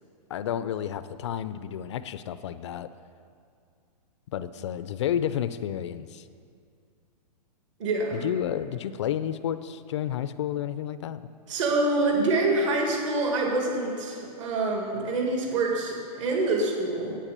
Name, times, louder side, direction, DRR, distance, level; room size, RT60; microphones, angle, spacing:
voice 1, 0.3-2.9 4.3-6.3 8.1-11.2, left 10 dB, 45° left, 13 dB, 0.4 m, -31 dB
voice 2, 7.8-8.2 11.5-17.2, right 2 dB, 45° right, 0 dB, 1.9 m, -26 dB
10.0 x 8.5 x 6.7 m, 2.3 s
hypercardioid pair, 165°, 21 cm